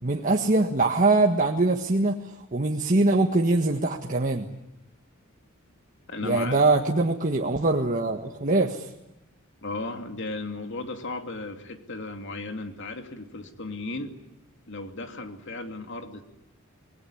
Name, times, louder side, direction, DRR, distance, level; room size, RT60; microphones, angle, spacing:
voice 1, 0.0-4.5 6.2-8.9, right 2 dB, 40° right, 2 dB, 1.6 m, -23 dB
voice 2, 6.1-6.5 9.6-14.1 14.7-16.2, left 2 dB, 60° left, 6 dB, 2.7 m, -35 dB
26.5 x 21.5 x 9.8 m, 0.89 s
head